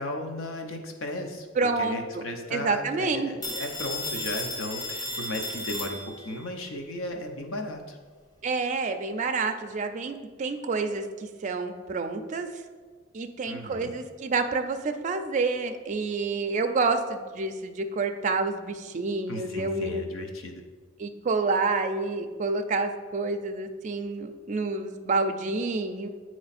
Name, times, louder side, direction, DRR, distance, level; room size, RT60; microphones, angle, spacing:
voice 1, 0.0-8.0 13.5-13.9 19.3-20.6, left 1 dB, 80° left, 4 dB, 0.8 m, -35 dB
voice 2, 1.6-2.2 2.5-3.3 8.4-12.6 13.1-20.0 21.0-26.1, right 3 dB, 35° right, 7 dB, 0.4 m, -28 dB
Telephone, 3.4-6.4, left 1 dB, 20° left, 0.9 m, -34 dB
8.6 x 3.1 x 4.1 m, 1.5 s
head